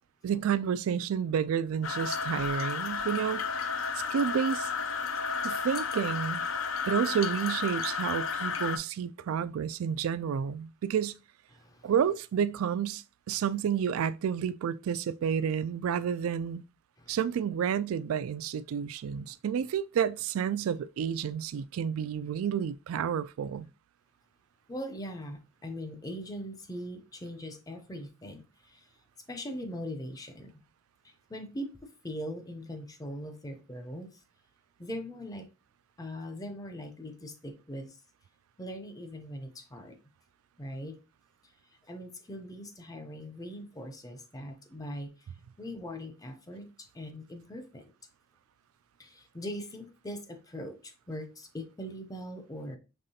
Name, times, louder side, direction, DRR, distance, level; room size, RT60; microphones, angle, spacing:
voice 1, 0.2-3.4 4.1-4.7 5.4-6.4 6.9-11.1 11.8-16.6 17.1-23.7, right 8 dB, 80° right, 0.3 m, -30 dB
sound 1, 1.8-8.8, left 6 dB, 70° left, 0.6 m, -32 dB
voice 2, 11.5-11.9 13.3-13.4 17.0-17.2 24.7-28.9 29.3-30.5 31.0-34.2 34.8-35.5 36.0-38.0 38.6-40.0 40.6-41.0 41.4-41.5 41.8-45.3 45.6-47.9 49.0-52.8, equal, 15° left, 0.5 m, -41 dB
5.3 x 3.2 x 2.7 m
head